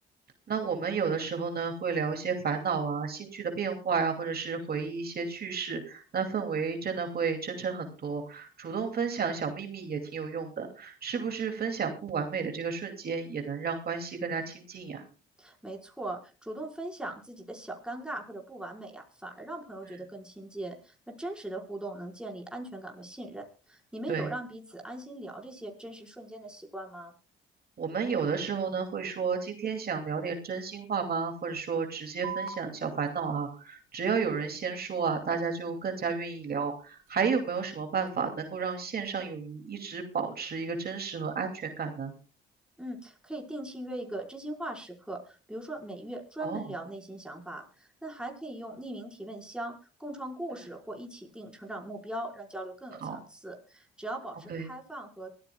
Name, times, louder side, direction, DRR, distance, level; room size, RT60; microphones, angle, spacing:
voice 1, 0.5-15.0 19.9-20.0 24.1-24.3 27.8-42.1 46.4-46.7 53.0-53.2 54.5-54.7, right 5 dB, 50° right, 4 dB, 2.6 m, -32 dB
voice 2, 15.4-27.1 42.8-49.7 50.0-55.3, right 1 dB, 5° right, 0 dB, 4.9 m, -40 dB
sound 1, 32.2-39.2, right 6 dB, 85° right, 3.2 m, -48 dB
23.0 x 14.0 x 2.3 m, 0.34 s
cardioid pair, 90°, 20 cm